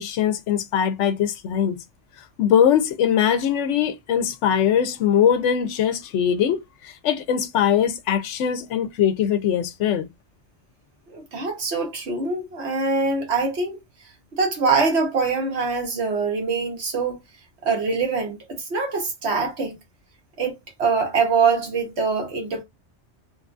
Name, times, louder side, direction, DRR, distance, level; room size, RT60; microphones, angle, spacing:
voice 1, 0.0-1.8 2.4-10.1, left 9 dB, 85° left, 0.9 m, -21 dB
voice 2, 11.1-13.8 14.3-17.2 17.6-19.7 20.4-22.6, right 4 dB, 70° right, 1.3 m, -24 dB
3.0 x 2.3 x 2.4 m
omnidirectional pair, 1.2 m